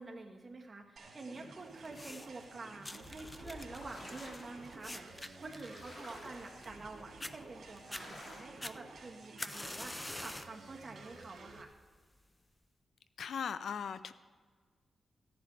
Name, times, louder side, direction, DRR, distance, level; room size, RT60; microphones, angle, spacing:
voice 1, 0.0-11.7, right 3 dB, 30° right, 1 dB, 1.4 m, -48 dB
sound 1, 1.0-11.6, right 3 dB, 75° right, 2.2 m, -53 dB
sound 2, 1.8-2.4 2.8-6.9 7.2-7.3 7.8-8.0 8.6-10.6 11.0-11.4 12.2-12.3, left 1 dB, 15° left, 0.4 m, -45 dB
sound 3, 3.0-8.4, left 1 dB, 50° left, 2.9 m, -53 dB
voice 2, 13.2-14.1, left 7 dB, 80° left, 13 dB, 0.5 m, -38 dB
15.5 x 10.0 x 3.4 m, 1.5 s
wide cardioid pair, 115°, 0 cm